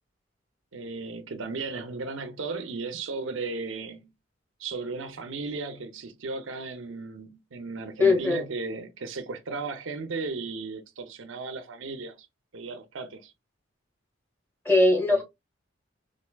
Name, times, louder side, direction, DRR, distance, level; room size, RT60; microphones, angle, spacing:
voice 1, 0.7-4.1 4.6-12.1 12.5-13.3 15.1-15.2, right 3 dB, 85° right, 0.6 m, -35 dB
voice 2, 8.0-8.4 14.6-15.2, left 2 dB, 10° left, 1.4 m, -20 dB
4.4 x 2.6 x 2.3 m
head